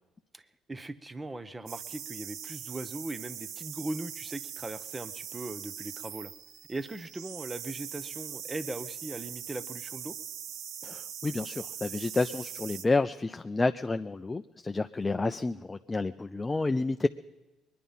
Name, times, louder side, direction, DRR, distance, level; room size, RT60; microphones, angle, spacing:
voice 1, 0.3-6.3 6.7-10.2, right 2 dB, 20° right, 14 dB, 0.8 m, -39 dB
sound 1, 1.7-12.8, right 9 dB, 65° right, 0.6 m, -41 dB
voice 2, 10.8-17.1, left 3 dB, 25° left, 9 dB, 0.4 m, -30 dB
21.5 x 10.5 x 5.5 m, 1.1 s
hypercardioid pair, 60°, 0 cm